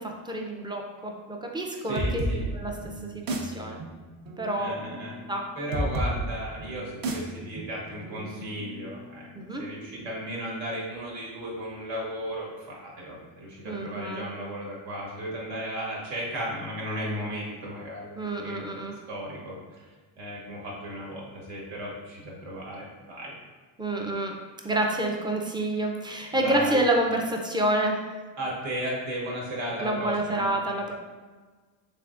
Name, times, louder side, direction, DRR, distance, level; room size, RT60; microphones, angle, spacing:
voice 1, 0.0-2.3 2.5-2.7 3.1-3.8 4.4-4.8 5.3-5.5 9.4-9.6 13.6-14.2 18.2-18.9 23.8-24.3 24.6-28.0 29.8-30.9, right 1 dB, 10° right, 1 dB, 0.3 m, -28 dB
voice 2, 1.8-2.5 4.6-5.2 5.5-9.3 9.6-18.8 19.1-19.8 20.2-23.3 26.3-26.8 28.4-30.5, equal, 75° right, -3 dB, 1.2 m, -35 dB
sound 1, 1.9-9.3, right 1 dB, 50° right, 0.6 m, -33 dB
3.4 x 3.2 x 2.4 m, 1.3 s
cardioid pair, 90°, 46 cm